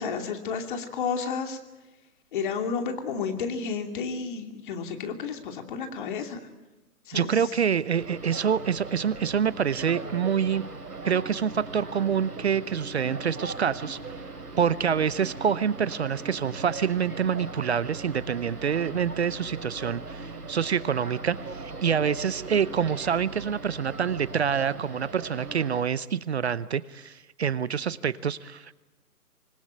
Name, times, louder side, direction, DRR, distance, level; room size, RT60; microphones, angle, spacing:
voice 1, 0.0-1.6 2.3-6.4 7.1-7.3, left 5 dB, 35° left, 5 dB, 2.8 m, -31 dB
voice 2, 7.1-10.6 11.0-14.0 14.6-28.7, right 7 dB, 45° right, 18 dB, 0.8 m, -26 dB
sound 1, 8.0-25.8, right 3 dB, 80° right, 4.3 m, -39 dB
26.0 x 20.0 x 9.0 m, 1.1 s
figure-of-eight pair, 150°, 46 cm